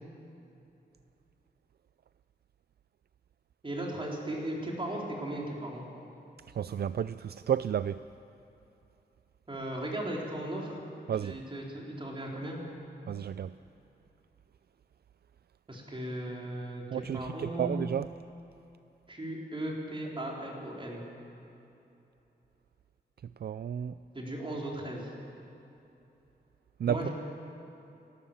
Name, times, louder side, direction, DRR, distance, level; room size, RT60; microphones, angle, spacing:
voice 1, 3.6-5.8 9.5-10.8 11.2-12.6 15.7-17.8 19.1-21.1 24.1-25.1 26.9-27.1, right 1 dB, 30° right, -2 dB, 4.1 m, -37 dB
voice 2, 6.6-8.0 11.1-11.4 13.1-13.5 16.9-18.1 23.4-23.9 26.8-27.1, right 9 dB, 65° right, 14 dB, 0.4 m, -31 dB
30.0 x 13.0 x 7.2 m, 2.9 s
wide cardioid pair, 120°, 18 cm